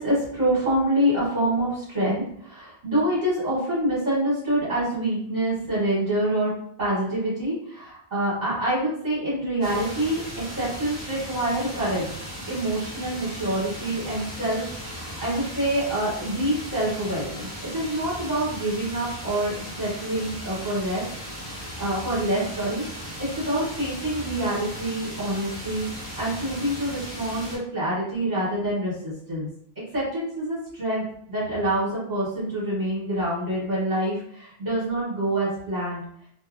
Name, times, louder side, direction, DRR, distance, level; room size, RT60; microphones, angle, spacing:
voice 1, 0.0-6.5 6.8-21.0 21.5-25.9 26.2-29.5 29.9-36.0, right 1 dB, 45° right, -10 dB, 1.3 m, -26 dB
sound 1, 9.6-27.6, equal, 10° left, 1.0 m, -37 dB
2.6 x 2.2 x 2.4 m, 0.66 s
omnidirectional pair, 1.0 m